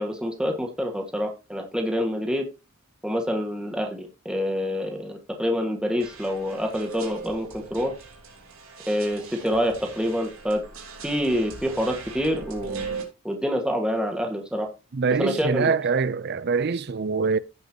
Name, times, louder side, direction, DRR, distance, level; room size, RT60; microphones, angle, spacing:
voice 1, 0.0-2.4 3.0-7.9 8.9-10.6 11.0-12.9 13.2-14.7 15.2-15.7, equal, 5° right, 1.6 m, -27 dB
sound 1, 6.0-13.0, right 5 dB, 75° right, 3.2 m, -39 dB
voice 2, 14.9-17.4, right 5 dB, 50° right, 0.5 m, -24 dB
16.0 x 5.5 x 2.8 m
head